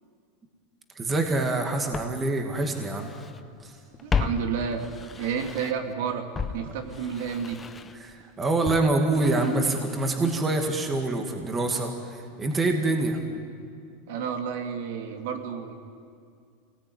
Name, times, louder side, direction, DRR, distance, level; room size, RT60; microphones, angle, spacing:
voice 1, 1.0-3.1 3.6-3.7 8.0-13.2, right 2 dB, 15° right, 3 dB, 2.2 m, -26 dB
Walk footsteps, 1.2-1.3 1.9-3.4 3.7-5.9 6.3-10.4 10.7-10.8, left 5 dB, 15° left, 0.8 m, -34 dB
voice 2, 4.0-4.8 5.1-7.6 14.1-15.7, right 7 dB, 65° right, 4 dB, 2.7 m, -31 dB
26.5 x 19.5 x 9.5 m, 2.3 s
supercardioid pair, 160°, 0 cm